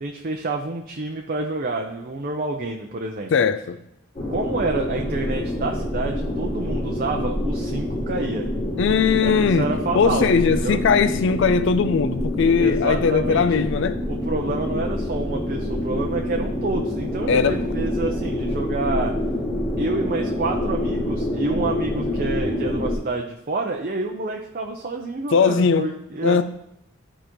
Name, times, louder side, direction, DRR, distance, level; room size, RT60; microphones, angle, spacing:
voice 1, 0.0-3.3 4.3-8.5 9.2-10.8 12.6-13.5 14.1-19.1 19.8-26.4, right 3 dB, 45° right, 0.6 m, -28 dB
voice 2, 3.3-3.8 8.8-9.7 9.9-14.0 17.3-17.7 25.3-25.9 26.2-26.4, left 5 dB, 60° left, 0.4 m, -19 dB
sound 1, 4.1-22.9, left 1 dB, 30° left, 1.9 m, -26 dB
12.5 x 4.9 x 3.0 m
head